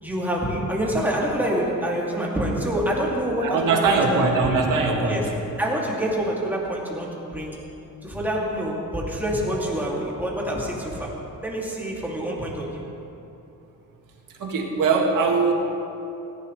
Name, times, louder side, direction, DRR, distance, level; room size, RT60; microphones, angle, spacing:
voice 1, 0.0-4.6 5.1-5.3 5.6-7.6 8.0-11.2 11.4-12.8, equal, 5° right, -4 dB, 2.5 m, -26 dB
voice 2, 3.4-5.2 14.4-15.5, right 4 dB, 65° right, 0 dB, 2.1 m, -21 dB
17.0 x 15.0 x 3.3 m, 2.8 s
cardioid pair, 130°, 35 cm